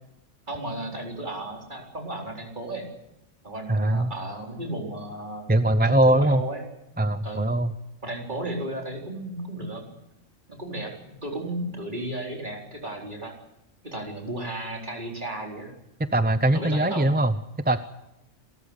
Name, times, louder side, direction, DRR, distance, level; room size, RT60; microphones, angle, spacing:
voice 1, 0.5-2.9 3.4-5.4 5.8-6.6 7.2-7.5 8.0-9.8 10.5-13.3 13.8-15.7 16.5-17.1, right 1 dB, 40° right, 0 dB, 4.5 m, -34 dB
voice 2, 3.7-4.1 5.5-6.4 7.0-7.7 16.1-17.8, right 1 dB, 10° right, 11 dB, 0.5 m, -21 dB
28.0 x 13.5 x 8.1 m, 0.89 s
omnidirectional pair, 1.3 m